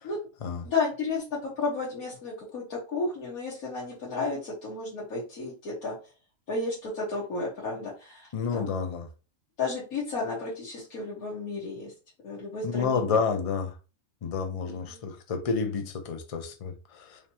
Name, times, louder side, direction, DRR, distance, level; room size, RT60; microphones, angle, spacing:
voice 1, 0.6-5.9 6.5-8.7 9.6-11.9 12.2-13.2 14.7-15.0, left 3 dB, 80° left, 1.7 m, -33 dB
voice 2, 8.3-9.1 12.6-13.7 14.2-17.2, left 5 dB, 45° left, 0.4 m, -30 dB
5.0 x 3.0 x 2.8 m
omnidirectional pair, 1.5 m